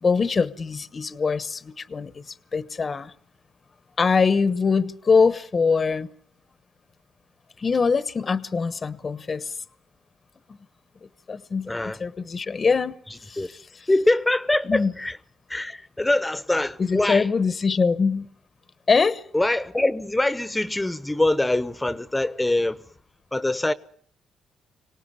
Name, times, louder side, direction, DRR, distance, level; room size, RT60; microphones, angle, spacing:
voice 1, 0.0-3.1 4.0-6.1 7.6-9.5 11.3-13.9 14.6-14.9 16.8-18.3 18.9-19.2, left 5 dB, 35° left, 1.0 m, -23 dB
voice 2, 11.7-12.0 13.4-13.5 13.9-15.2 15.5-17.3 19.3-22.8 23.3-23.7, left 2 dB, 10° left, 1.0 m, -23 dB
26.0 x 18.5 x 9.7 m
cardioid pair, 90°, 0 cm